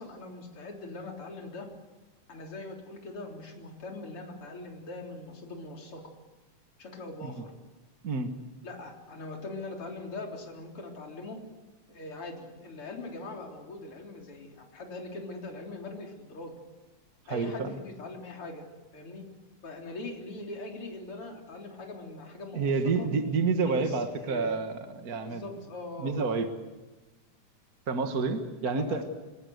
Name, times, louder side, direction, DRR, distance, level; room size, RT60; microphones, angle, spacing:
voice 1, 0.0-1.7 2.3-6.1 6.8-7.5 8.6-11.4 11.9-16.6 17.3-18.7 18.9-19.2 19.6-23.1 23.6-24.6 25.2-26.2 28.6-29.0, left 2 dB, 50° left, 1 dB, 4.5 m, -41 dB
voice 2, 17.3-17.8 22.5-25.5 26.0-26.5 27.9-29.0, right 4 dB, 40° right, 6 dB, 1.5 m, -29 dB
26.0 x 21.5 x 8.0 m, 1.2 s
omnidirectional pair, 3.3 m